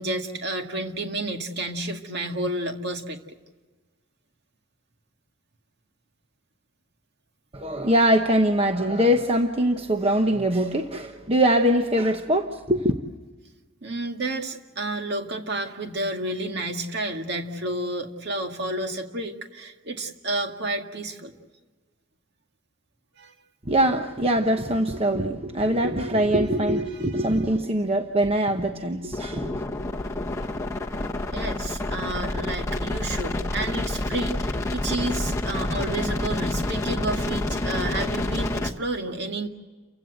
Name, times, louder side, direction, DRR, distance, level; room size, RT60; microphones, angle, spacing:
voice 1, 0.0-3.4 13.8-21.3 23.2-23.3 26.9-27.4 31.3-39.5, right 2 dB, 55° right, 4 dB, 2.0 m, -31 dB
voice 2, 7.5-12.9 23.7-29.6, right 1 dB, 30° right, 5 dB, 1.0 m, -22 dB
sound 1, 29.1-38.7, left 1 dB, 15° left, 1.2 m, -28 dB
30.0 x 16.0 x 7.9 m, 1.3 s
head